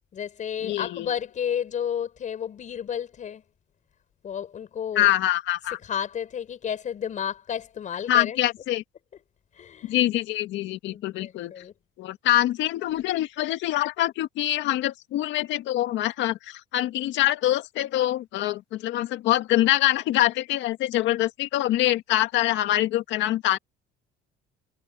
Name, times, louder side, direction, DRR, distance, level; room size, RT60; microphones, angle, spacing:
voice 1, 0.1-3.4 4.2-5.1 5.6-8.4 9.5-10.0 10.9-11.7, left 8 dB, 40° left, 6.3 m, -32 dB
voice 2, 0.6-1.1 5.0-5.8 8.1-8.8 9.8-11.5 12.0-23.6, left 14 dB, 65° left, 1.9 m, -24 dB
cardioid pair, 150°, 20 cm